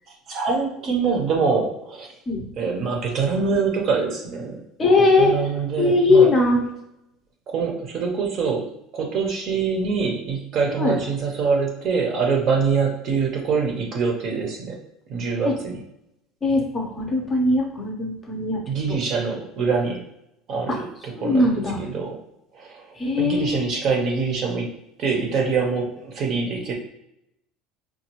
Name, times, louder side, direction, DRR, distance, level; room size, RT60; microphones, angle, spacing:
voice 1, 0.3-2.1 2.6-4.6 5.0-6.3 7.5-14.8 15.1-15.8 18.7-20.0 20.5-22.2 22.5-22.9 23.2-24.7 25.0-26.7, right 5 dB, 35° right, 1 dB, 0.7 m, -24 dB
voice 2, 4.8-5.3 5.8-6.6 10.8-11.0 15.4-15.5 16.4-18.6 20.7-20.8 21.1-21.8 22.9-23.6, left 3 dB, 20° left, 0 dB, 0.6 m, -20 dB
5.3 x 2.3 x 2.9 m, 0.81 s
cardioid pair, 175°, 0 cm